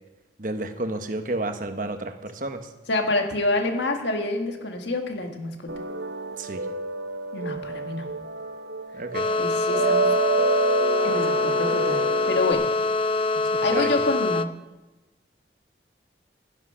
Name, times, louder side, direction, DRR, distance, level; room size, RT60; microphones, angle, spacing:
voice 1, 0.4-2.6 6.4-6.6 8.9-9.3 13.7-13.9, right 2 dB, 45° right, 7 dB, 1.1 m, -30 dB
voice 2, 2.9-5.7 7.3-8.1 9.4-10.1 11.0-12.7 13.6-14.5, left 2 dB, 75° left, 4 dB, 1.8 m, -27 dB
sound 1, 5.7-12.5, right 3 dB, 70° right, 0.8 m, -28 dB
sound 2, 9.1-14.4, left 3 dB, 30° left, 0.4 m, -24 dB
12.5 x 11.5 x 5.7 m, 1.1 s
head